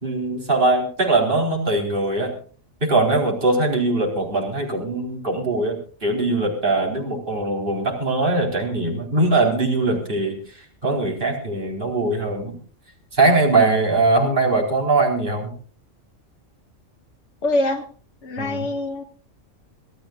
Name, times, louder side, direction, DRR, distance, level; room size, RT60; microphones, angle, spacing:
voice 1, 0.0-2.4 2.8-10.4 10.8-12.6 13.1-15.5 18.4-18.7, right 2 dB, 40° right, 0 dB, 4.5 m, -21 dB
voice 2, 17.4-17.9 18.2-19.0, left 1 dB, 65° left, 3 dB, 1.8 m, -24 dB
26.0 x 15.5 x 2.5 m, 0.41 s
omnidirectional pair, 1.3 m